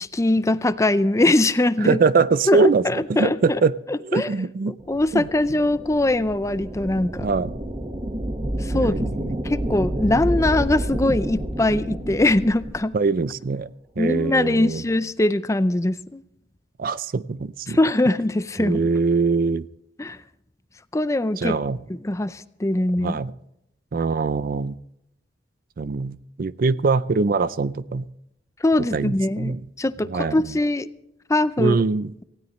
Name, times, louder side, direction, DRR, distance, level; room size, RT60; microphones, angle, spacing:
voice 1, 0.0-2.0 2.5-3.4 3.9-4.3 4.7-7.3 8.6-8.9 9.4-12.9 14.0-16.2 17.7-18.8 20.0-20.2 20.9-21.6 22.0-23.2 28.6-30.9 31.3-31.8, left 2 dB, 15° left, 14 dB, 0.5 m, -22 dB
voice 2, 1.8-3.7 4.0-4.8 5.1-5.3 7.2-7.5 8.7-9.4 12.9-13.7 14.0-14.8 16.8-17.8 18.6-19.7 21.4-21.8 23.0-23.3 23.9-24.8 25.8-28.1 28.9-29.6 30.0-30.5 31.6-32.1, right 4 dB, 50° right, 18 dB, 0.4 m, -23 dB
sound 1, 4.8-12.9, right 1 dB, 30° right, 1.4 m, -29 dB
19.0 x 16.0 x 3.1 m, 0.81 s
head